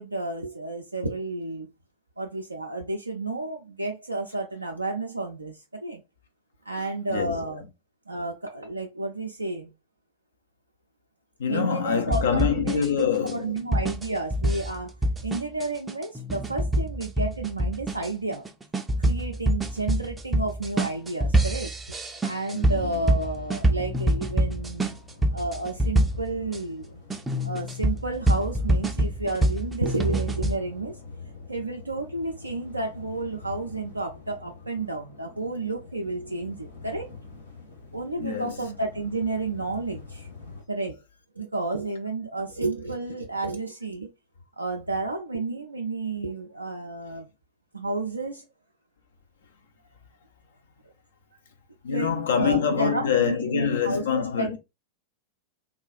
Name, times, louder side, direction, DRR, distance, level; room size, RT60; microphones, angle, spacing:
voice 1, 0.0-1.7 2.2-6.0 6.7-7.6 8.1-9.7 11.5-12.9 13.3-15.0 15.2-18.5 19.0-21.7 22.2-25.0 25.3-27.0 27.4-31.0 31.5-37.1 37.9-40.3 40.7-41.0 41.4-44.1 44.6-47.3 47.7-48.4 51.9-54.5, right 3 dB, 80° right, 0.4 m, -31 dB
voice 2, 6.8-7.6 11.4-13.7 22.5-23.0 38.2-38.6 51.8-54.6, left 7 dB, 65° left, 0.5 m, -26 dB
sound 1, 12.1-26.6 27.1-30.6, right 1 dB, 10° right, 0.4 m, -26 dB
sound 2, 22.8-40.6, left 4 dB, 80° left, 1.0 m, -46 dB
3.6 x 2.3 x 2.3 m
figure-of-eight pair, 90°, 0 cm